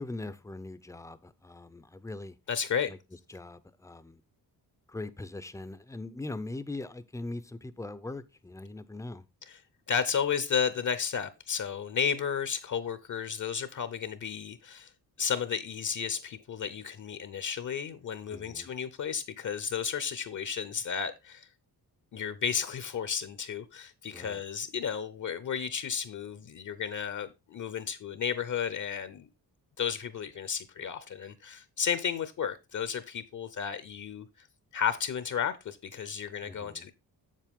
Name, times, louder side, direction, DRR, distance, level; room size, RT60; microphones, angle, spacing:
voice 1, 0.0-2.4 2.9-3.0 3.3-4.2 4.9-9.2 18.3-18.7 24.1-24.4 36.4-36.9, left 2 dB, 10° left, 0.5 m, -41 dB
voice 2, 2.5-2.9 9.5-9.6 9.9-14.9 15.2-21.5 22.1-29.3 29.8-34.3 34.7-36.9, left 7 dB, 50° left, 0.7 m, -33 dB
7.5 x 7.3 x 3.6 m
wide cardioid pair, 145°, 38 cm